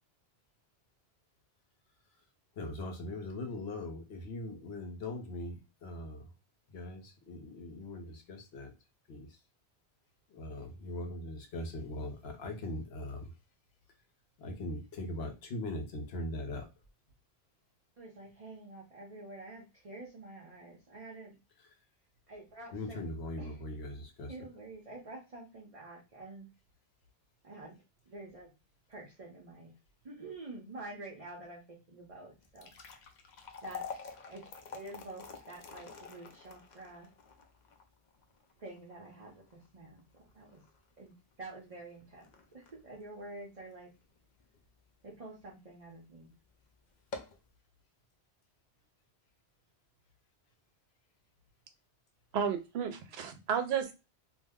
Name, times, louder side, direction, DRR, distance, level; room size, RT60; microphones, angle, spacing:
voice 1, 2.6-6.2 6.7-8.7 9.1-9.3 10.3-13.3 14.4-16.6 22.7-24.3, left 1 dB, 70° left, 1.1 m, -40 dB
voice 2, 18.0-21.4 22.3-23.0 23.4-23.6 24.2-26.5 27.4-27.8 28.1-28.5 28.9-29.7 30.0-32.7 33.6-37.1 38.6-40.6 41.0-43.9 45.0-46.3, right 2 dB, 35° right, 0.7 m, -48 dB
sound 1, 32.3-44.6 45.1-45.2 45.9-46.1 46.4-46.5 46.9-47.5, left 5 dB, 55° left, 0.5 m, -48 dB
voice 3, 52.3-53.9, right 7 dB, 70° right, 0.9 m, -32 dB
2.5 x 2.1 x 3.5 m
omnidirectional pair, 1.1 m